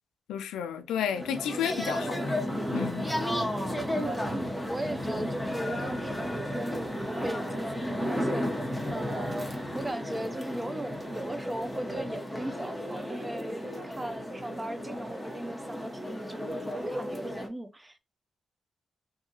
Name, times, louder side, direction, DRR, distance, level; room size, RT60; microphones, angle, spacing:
voice 1, 0.3-2.3 2.7-3.1, left 9 dB, 90° left, 0.3 m, -32 dB
sound 1, 1.0-17.5, equal, ahead, 0.9 m, -33 dB
voice 2, 4.3-18.0, right 1 dB, 20° right, 0.5 m, -38 dB
2.7 x 2.4 x 2.7 m
supercardioid pair, 55°, 0 cm